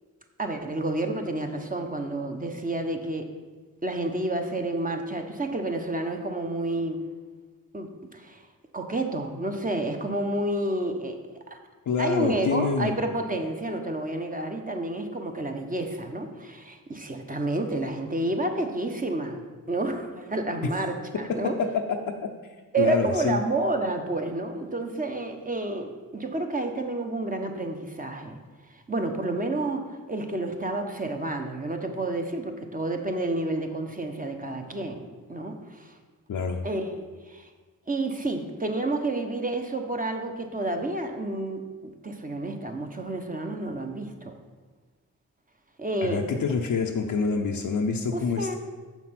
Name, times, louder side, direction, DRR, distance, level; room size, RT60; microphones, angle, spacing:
voice 1, 0.4-3.3 3.8-7.0 7.7-8.4 8.7-11.2 11.5-11.6 12.0-21.6 22.7-28.4 28.9-35.9 36.6-37.5 37.9-44.3 45.8-46.3 48.1-48.6, right 2 dB, 25° right, 4 dB, 1.2 m, -30 dB
voice 2, 11.9-12.9 21.3-22.0 22.8-23.4 36.3-36.6 46.0-48.5, left 5 dB, 70° left, 1 dB, 0.7 m, -26 dB
7.0 x 5.9 x 5.9 m, 1.4 s
cardioid pair, 60°, 34 cm